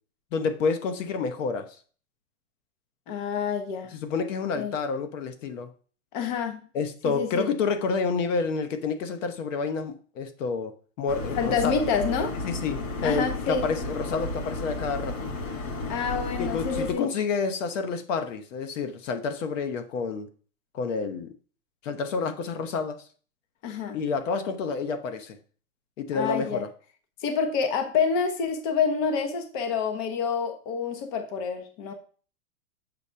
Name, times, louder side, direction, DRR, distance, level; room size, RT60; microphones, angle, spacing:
voice 1, 0.3-1.8 3.9-5.7 6.7-11.7 12.4-15.2 16.4-20.3 20.7-21.3 21.8-23.0 23.9-25.4 26.0-26.7, left 5 dB, 60° left, 1.1 m, -29 dB
voice 2, 3.1-3.9 4.6-4.7 6.1-6.6 7.0-7.5 11.3-12.3 13.0-13.6 15.9-17.0 23.6-24.0 26.1-26.6 27.2-31.9, left 6 dB, 35° left, 1.0 m, -27 dB
sound 1, 11.1-16.9, left 2 dB, 75° left, 3.1 m, -33 dB
7.1 x 4.0 x 5.6 m
supercardioid pair, 165°, 42 cm